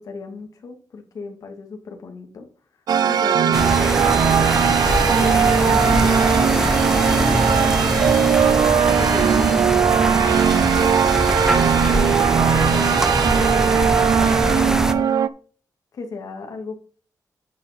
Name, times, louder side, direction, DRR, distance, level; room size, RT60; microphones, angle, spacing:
voice 1, 0.0-2.5 3.0-4.6 5.5-9.9 11.6-13.2 14.2-15.2 15.9-16.8, left 4 dB, 60° left, 2.5 m, -36 dB
sound 1, 2.9-15.3, right 8 dB, 80° right, 0.6 m, -19 dB
sound 2, 3.5-14.9, right 1 dB, 10° right, 1.0 m, -22 dB
sound 3, 4.8-9.8, left 2 dB, 25° left, 2.9 m, -27 dB
10.5 x 5.4 x 5.3 m
wide cardioid pair, 145°, 7 cm